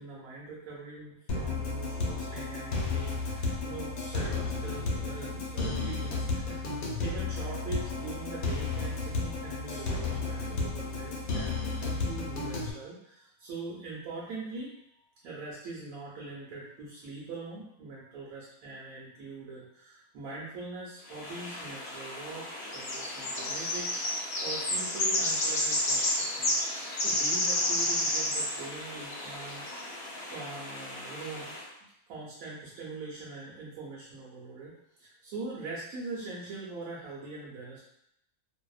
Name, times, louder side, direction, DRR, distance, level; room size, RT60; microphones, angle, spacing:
voice 1, 0.0-6.7 7.0-14.7 15.2-22.5 22.7-29.6 29.9-31.5 32.1-34.7 35.0-37.8, right 3 dB, 85° right, -6 dB, 1.0 m, -42 dB
sound 1, 1.3-12.7, left 3 dB, 85° left, 1.0 m, -33 dB
sound 2, 21.1-31.6, left 1 dB, 60° left, 0.8 m, -31 dB
2.6 x 2.0 x 2.3 m, 0.77 s
omnidirectional pair, 1.5 m